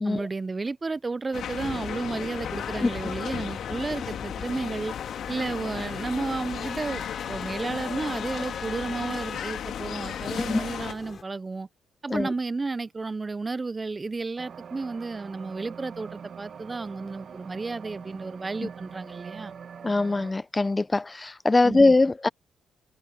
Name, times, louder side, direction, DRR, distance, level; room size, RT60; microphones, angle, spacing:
voice 1, 0.0-5.0 5.3-7.0 7.3-11.7 12.0-19.5 21.6-21.9, right 3 dB, 25° right, 0.4 m, -32 dB
sound 1, 1.3-10.9, left 9 dB, 70° left, 2.5 m, -35 dB
sound 2, 1.6-11.2, left 5 dB, 40° left, 7.5 m, -42 dB
voice 2, 10.3-10.7 12.1-12.3 18.6-18.7 19.8-22.3, left 2 dB, 20° left, 0.6 m, -22 dB
sound 3, 14.4-20.3, right 7 dB, 55° right, 1.2 m, -43 dB
cardioid pair, 90°, 0 cm